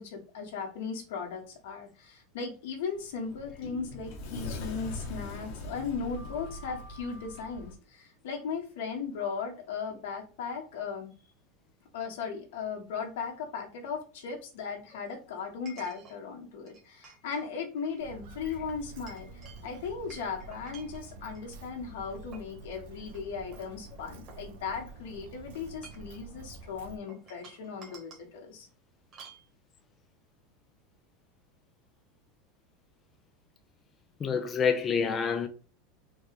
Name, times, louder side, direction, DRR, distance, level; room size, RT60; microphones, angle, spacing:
voice 1, 0.0-11.1 11.9-28.7, left 5 dB, 85° left, 1.6 m, -37 dB
Sliding door, 2.9-7.7, left 2 dB, 45° left, 0.9 m, -41 dB
Chink clink, 15.7-16.2 16.7-17.5 17.8-18.0 18.7-21.5 22.0-22.6 23.1-23.2 23.5-24.9 25.6-26.2 27.1-28.3 29.1-29.4, right 5 dB, 20° right, 1.4 m, -52 dB
Walk footsteps, 18.0-27.0, right 3 dB, 65° right, 0.9 m, -48 dB
voice 2, 34.2-35.5, left 6 dB, 20° left, 0.3 m, -27 dB
4.5 x 2.4 x 4.8 m
supercardioid pair, 175°, 0 cm